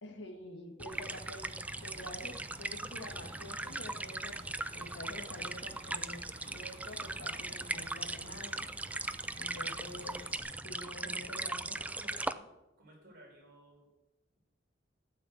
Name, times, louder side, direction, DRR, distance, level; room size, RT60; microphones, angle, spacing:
voice 1, 0.0-1.5 1.8-4.3 4.7-8.7 9.4-10.2 10.6-11.7, left 1 dB, 65° left, 3 dB, 2.0 m, -48 dB
sound 1, 0.8-12.3, right 2 dB, 10° right, 0.3 m, -39 dB
sound 2, 0.9-10.4, right 1 dB, 35° right, 1.4 m, -54 dB
voice 2, 11.0-12.5 12.8-13.9, right 1 dB, 55° right, -1 dB, 4.3 m, -55 dB
12.5 x 5.9 x 8.1 m, 1.0 s
head